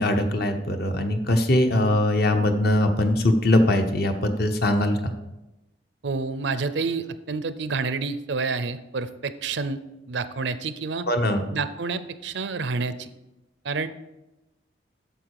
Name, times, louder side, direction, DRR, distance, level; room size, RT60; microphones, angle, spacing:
voice 1, 0.0-5.1 11.1-11.4, left 1 dB, 55° left, 6 dB, 0.9 m, -21 dB
voice 2, 6.0-9.8 10.1-11.1 11.5-13.1 13.6-13.9, right 4 dB, 65° right, 13 dB, 0.5 m, -28 dB
8.9 x 6.7 x 4.7 m, 0.98 s
head